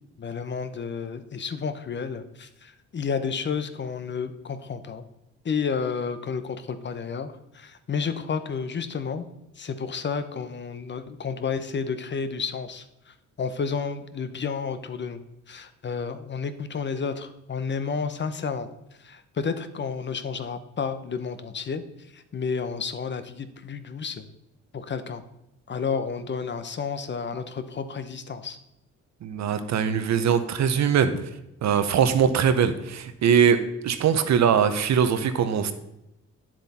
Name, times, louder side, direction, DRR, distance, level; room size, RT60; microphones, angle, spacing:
voice 1, 0.2-5.0 5.4-9.3 9.6-15.2 15.5-18.7 19.0-21.8 22.1-24.3 24.7-25.2 25.7-28.6, left 5 dB, 35° left, 11 dB, 0.9 m, -31 dB
voice 2, 29.2-31.1 31.6-35.7, right 7 dB, 65° right, 10 dB, 1.0 m, -21 dB
9.8 x 7.4 x 4.3 m, 0.88 s
cardioid pair, 90°, 30 cm